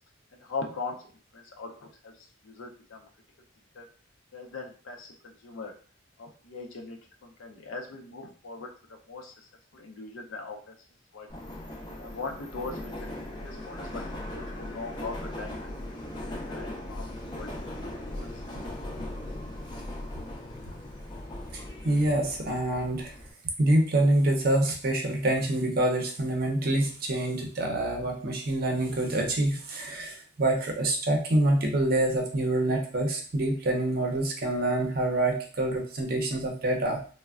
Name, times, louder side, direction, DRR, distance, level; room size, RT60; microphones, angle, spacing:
voice 1, 0.3-1.0 1.3-3.1 3.7-3.9 4.3-5.8 6.2-10.8 11.1-11.3 12.0-14.0 14.3-15.7 16.3-18.4, left 3 dB, 80° left, 1 dB, 0.5 m, -40 dB
Subway metro underground, 11.3-23.3, left 1 dB, 20° left, 0.4 m, -39 dB
voice 2, 21.5-23.1 23.6-37.0, right 1 dB, 45° right, 2 dB, 0.5 m, -26 dB
3.2 x 2.1 x 2.3 m, 0.42 s
head